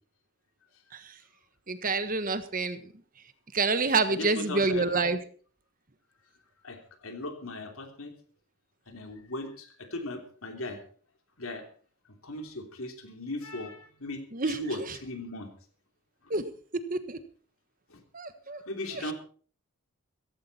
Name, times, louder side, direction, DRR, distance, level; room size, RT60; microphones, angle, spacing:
voice 1, 1.7-2.9 3.5-5.2 14.3-15.0 16.3-16.4 16.7-17.2 18.1-18.6 18.9-19.1, right 3 dB, 40° right, 11 dB, 1.3 m, -28 dB
voice 2, 4.1-4.8 6.6-8.1 8.9-10.8 11.4-11.7 12.2-15.5 16.2-16.3 17.9-18.0 18.7-19.1, left 2 dB, 70° left, 5 dB, 3.2 m, -38 dB
16.5 x 15.0 x 4.3 m, 0.43 s
head